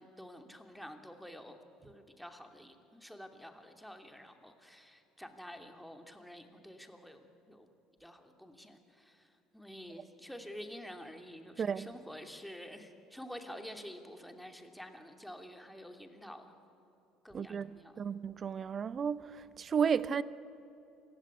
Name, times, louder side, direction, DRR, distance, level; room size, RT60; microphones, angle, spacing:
voice 1, 0.0-1.6 1.8-7.7 8.0-16.5 17.2-18.0, equal, ahead, 2.7 m, -49 dB
voice 2, 17.3-17.7 18.0-20.2, right 7 dB, 40° right, 0.8 m, -33 dB
27.0 x 16.0 x 9.7 m
figure-of-eight pair, 60°, 0 cm